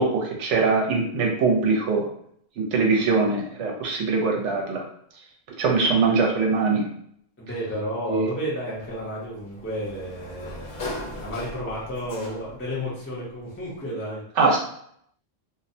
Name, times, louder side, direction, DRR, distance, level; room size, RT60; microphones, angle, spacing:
voice 1, 0.0-2.1 2.6-4.8 5.6-6.8 8.1-8.3 14.4-14.6, right 4 dB, 70° right, 0 dB, 0.9 m, -22 dB
voice 2, 7.4-14.2, equal, 15° left, -6 dB, 0.5 m, -32 dB
Sliding door, 8.8-12.7, left 1 dB, 85° left, 1.1 m, -38 dB
2.6 x 2.1 x 2.6 m, 0.67 s
omnidirectional pair, 1.3 m